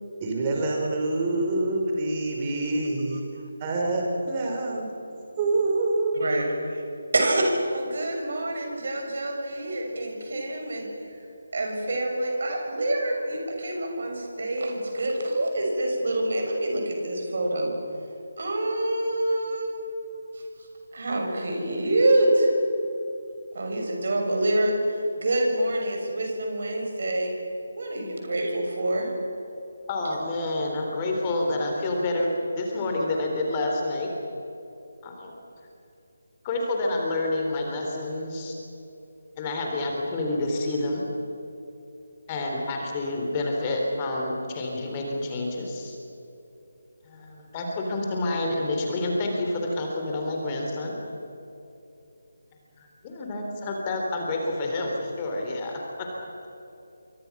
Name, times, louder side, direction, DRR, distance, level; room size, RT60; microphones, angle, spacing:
voice 1, 0.2-3.2 3.6-4.9 5.4-6.3, right 2 dB, 25° right, 0 dB, 5.0 m, -26 dB
voice 2, 6.1-6.8 7.1-11.2 11.5-17.7 18.4-19.7 20.3-20.4 20.9-22.5 23.5-27.3 27.8-29.1, right 1 dB, 50° right, 1 dB, 6.7 m, -26 dB
voice 3, 29.9-34.1 35.0-35.3 36.4-38.5 39.4-41.0 42.3-46.0 47.0-51.0 52.8-56.1, left 2 dB, 20° left, 0 dB, 3.7 m, -28 dB
28.0 x 25.0 x 6.2 m, 2.9 s
figure-of-eight pair, 155°, 0 cm